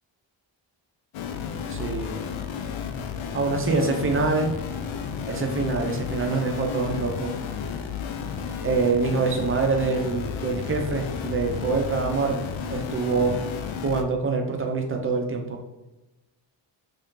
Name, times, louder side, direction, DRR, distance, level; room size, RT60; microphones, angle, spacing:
sound 1, 1.1-14.0, left 6 dB, 80° left, 0.6 m, -32 dB
voice 1, 1.7-2.1 3.3-4.5 5.3-7.3 8.6-13.4 13.8-15.6, right 4 dB, 30° right, 3 dB, 0.5 m, -25 dB
3.5 x 2.7 x 3.6 m, 1.0 s
wide cardioid pair, 170°, 47 cm